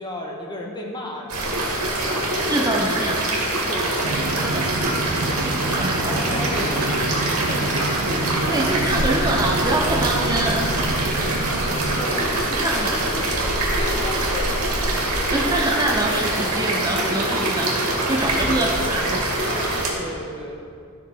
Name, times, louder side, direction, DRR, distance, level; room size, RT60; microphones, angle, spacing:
voice 1, 0.0-1.6 2.2-3.2 3.7-4.5 5.8-8.3 11.9-13.3 13.8-15.1 18.5-18.8 19.9-20.5, left 1 dB, 20° left, 0 dB, 1.2 m, -35 dB
sound 1, 1.3-19.9, right 1 dB, 85° right, 2.2 m, -24 dB
voice 2, 2.5-3.2 4.3-4.7 5.8-6.7 8.5-10.8 12.5-13.0 15.3-19.3, right 1 dB, 15° right, 0 dB, 0.6 m, -25 dB
sound 2, 4.0-12.0, right 2 dB, 60° right, 0.7 m, -29 dB
13.0 x 6.0 x 4.9 m, 2.3 s
head